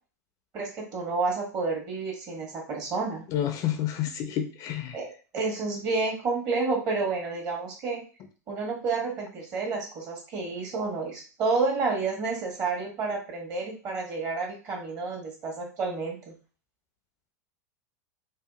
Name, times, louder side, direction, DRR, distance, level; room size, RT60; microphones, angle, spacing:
voice 1, 0.5-3.2 4.9-8.0 8.5-16.3, right 4 dB, 40° right, -1 dB, 1.3 m, -30 dB
voice 2, 3.3-5.0, left 10 dB, 40° left, 7 dB, 0.4 m, -29 dB
2.7 x 2.3 x 2.3 m, 0.36 s
hypercardioid pair, 90°, 9 cm